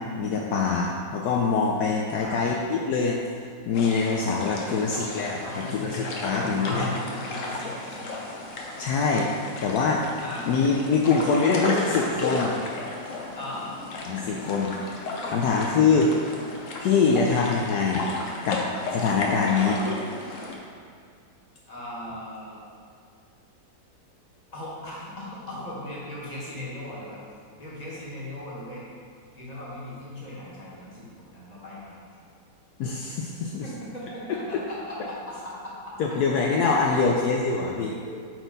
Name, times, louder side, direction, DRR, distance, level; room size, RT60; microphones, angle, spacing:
voice 1, 0.2-3.2 3.7-6.9 8.8-10.1 10.5-12.6 14.1-15.0 15.3-16.1 16.8-18.1 18.4-19.8 32.8-33.7 36.0-37.9, left 4 dB, 75° left, -1 dB, 1.1 m, -24 dB
voice 2, 2.2-2.5 4.6-5.1 5.4-5.8 6.3-8.2 10.2-10.5 13.3-13.7 15.4-15.9 21.7-22.6 24.5-27.2 27.6-28.8 29.3-32.0 33.6-35.7 36.9-37.1 38.0-38.1, left 1 dB, 25° left, -7 dB, 1.7 m, -38 dB
sound 1, 3.7-20.6, left 2 dB, 55° left, 1.1 m, -34 dB
9.0 x 4.2 x 3.9 m, 2.3 s
omnidirectional pair, 1.8 m